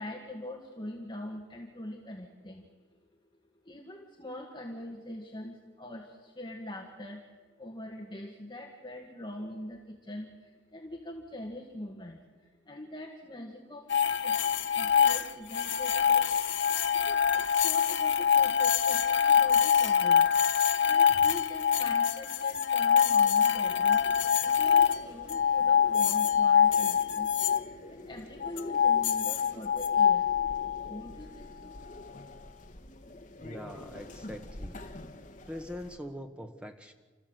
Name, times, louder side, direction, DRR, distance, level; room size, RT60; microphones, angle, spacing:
voice 1, 0.0-2.7 3.6-14.5 14.8-16.3 16.9-20.3 20.8-27.3 27.9-30.3 30.9-31.8 32.4-32.5 35.3-35.4, left 1 dB, 25° left, 0 dB, 1.9 m, -43 dB
sound 1, 13.9-27.6 28.4-31.0, left 8 dB, 65° left, 1.0 m, -25 dB
sound 2, 23.6-36.0, left 1 dB, 40° left, 1.3 m, -47 dB
voice 2, 33.4-34.8 35.5-36.9, equal, 5° right, 5 dB, 1.5 m, -42 dB
30.0 x 14.5 x 8.0 m, 1.4 s
head